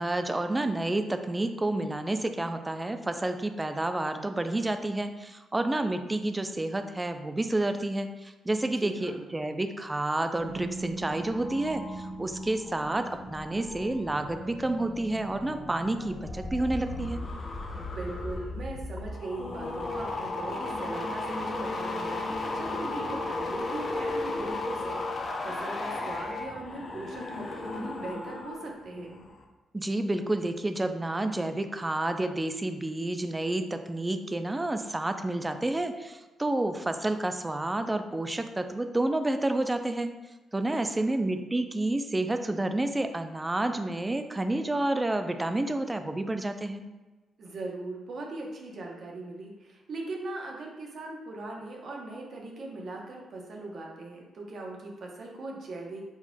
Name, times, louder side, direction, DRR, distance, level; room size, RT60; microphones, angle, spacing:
voice 1, 0.0-17.2 29.7-40.1 40.5-46.8, right 2 dB, 20° right, 8 dB, 0.4 m, -29 dB
voice 2, 8.7-9.2 17.8-25.0 25.4-29.2 40.7-41.2 47.4-56.0, right 2 dB, 60° right, 0 dB, 0.9 m, -40 dB
sound 1, 10.4-17.1, right 1 dB, 20° left, 1.2 m, -42 dB
sound 2, 16.1-28.7 29.0-29.4, left 2 dB, 45° left, 0.6 m, -34 dB
4.6 x 4.2 x 2.2 m, 1.2 s
cardioid pair, 75°, 0 cm